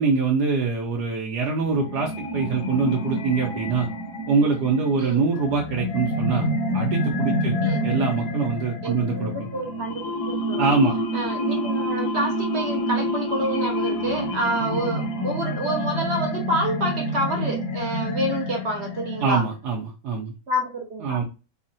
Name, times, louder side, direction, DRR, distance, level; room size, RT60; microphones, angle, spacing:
voice 1, 0.0-3.9 4.3-6.5 6.7-7.6 7.8-9.5 10.6-10.9 19.2-20.3 21.0-21.2, right 4 dB, 85° right, -1 dB, 1.2 m, -24 dB
sound 1, 1.6-19.6, equal, 80° left, 1.3 m, -28 dB
voice 2, 8.8-10.8 11.1-19.4 20.5-21.2, right 1 dB, 60° right, 2 dB, 0.7 m, -28 dB
3.7 x 2.1 x 2.6 m, 0.31 s
omnidirectional pair, 1.7 m